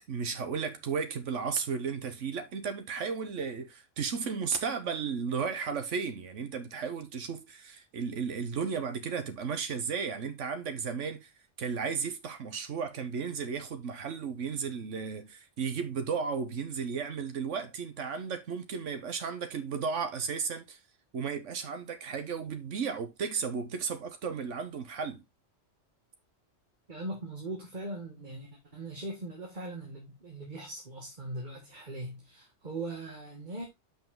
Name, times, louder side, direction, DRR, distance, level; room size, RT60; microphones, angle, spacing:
voice 1, 0.1-11.3 11.6-20.8 21.1-25.2, right 6 dB, 85° right, 1.4 m, -34 dB
voice 2, 26.9-33.7, right 2 dB, 40° right, 1.9 m, -40 dB
7.1 x 5.8 x 3.8 m
omnidirectional pair, 1.2 m